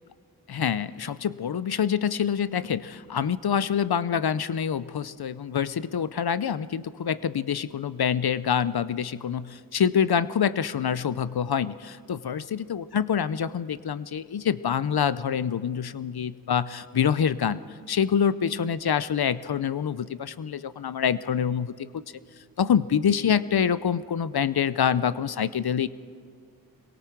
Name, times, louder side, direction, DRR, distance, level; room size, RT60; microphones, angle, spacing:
voice 1, 0.5-17.6 17.9-22.0 22.6-25.9, left 8 dB, 85° left, 16 dB, 0.6 m, -26 dB
25.5 x 22.5 x 4.6 m, 2.1 s
wide cardioid pair, 40°, 37 cm